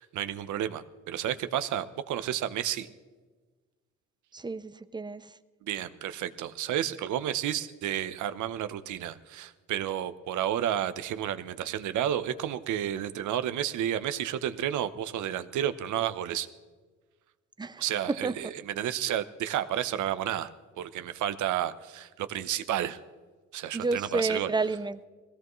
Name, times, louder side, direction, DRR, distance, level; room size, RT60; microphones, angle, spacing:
voice 1, 0.0-2.9 5.6-16.5 17.8-20.5 20.8-23.0 23.5-24.5, right 11 dB, 80° right, 12 dB, 0.8 m, -31 dB
voice 2, 4.3-5.2 17.6-17.8 18.2-18.3 23.7-25.0, right 3 dB, 15° right, 14 dB, 0.6 m, -30 dB
21.0 x 16.5 x 3.1 m, 1.4 s
cardioid pair, 90°, 30 cm